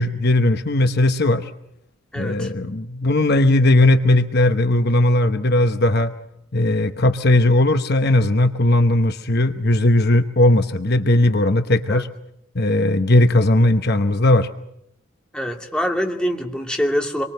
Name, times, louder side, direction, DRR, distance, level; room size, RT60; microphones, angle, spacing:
voice 1, 0.0-1.5 2.1-6.1 6.5-12.1 12.5-14.5, left 1 dB, 50° left, 8 dB, 1.0 m, -17 dB
voice 2, 2.1-2.5 11.9-12.0 15.3-17.2, equal, 5° left, 1 dB, 2.5 m, -24 dB
26.0 x 23.5 x 6.7 m, 0.79 s
head